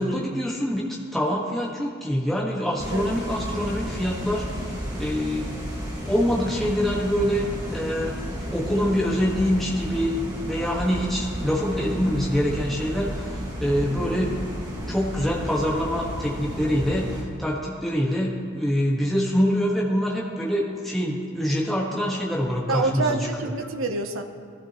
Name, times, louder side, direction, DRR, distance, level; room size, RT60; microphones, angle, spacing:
voice 1, 0.0-4.4 5.0-5.6 6.0-10.2 10.4-14.4 14.9-23.5, equal, ahead, -5 dB, 1.6 m, -25 dB
sound 1, 2.8-17.2, equal, 20° right, 1.8 m, -32 dB
voice 2, 22.7-24.2, right 3 dB, 85° right, 5 dB, 0.8 m, -27 dB
20.5 x 12.0 x 3.1 m, 2.1 s
head